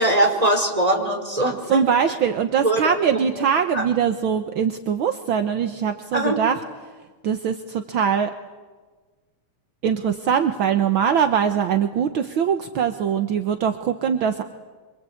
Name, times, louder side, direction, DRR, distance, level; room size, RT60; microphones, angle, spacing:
voice 1, 0.0-1.8 2.6-3.3 3.7-3.8 6.1-6.4, right 1 dB, 10° right, 2 dB, 4.3 m, -21 dB
voice 2, 1.7-6.6 7.2-8.3 9.8-14.4, right 7 dB, 60° right, 8 dB, 1.3 m, -22 dB
26.5 x 24.5 x 8.6 m, 1.4 s
omnidirectional pair, 3.4 m